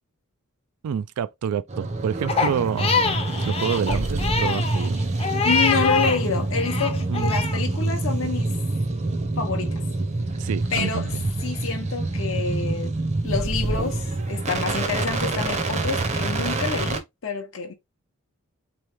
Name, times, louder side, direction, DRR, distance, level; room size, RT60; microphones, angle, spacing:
voice 1, 0.8-3.2 3.4-5.0 7.1-7.4 10.4-11.2, right 8 dB, 85° right, 0.3 m, -28 dB
sound 1, 1.7-17.0, right 2 dB, 30° right, 0.6 m, -26 dB
Crying sobbing, 2.3-6.2 6.5-7.6, left 5 dB, 25° left, 0.6 m, -25 dB
voice 2, 5.4-8.5 9.4-9.8 10.7-11.1 11.4-12.9 13.2-17.7, left 5 dB, 60° left, 0.7 m, -28 dB
3.5 x 3.0 x 3.3 m
head